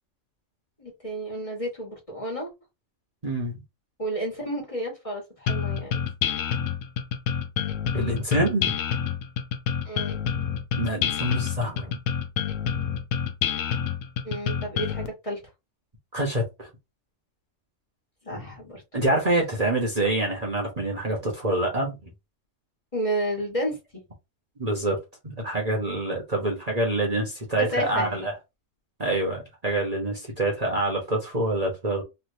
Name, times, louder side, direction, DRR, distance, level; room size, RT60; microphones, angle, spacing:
voice 1, 0.8-2.5 4.0-6.0 9.8-10.2 14.2-15.4 18.2-18.8 22.9-23.8 27.6-28.2, right 1 dB, 25° left, 1.5 m, -31 dB
voice 2, 3.2-3.6 7.9-8.8 10.8-12.0 16.1-16.7 18.9-22.1 24.6-25.0 25.2-28.3 29.0-32.0, right 1 dB, 35° right, 1.1 m, -26 dB
sound 1, 5.5-15.1, left 8 dB, 80° left, 1.0 m, -28 dB
3.2 x 2.7 x 2.6 m
omnidirectional pair, 1.3 m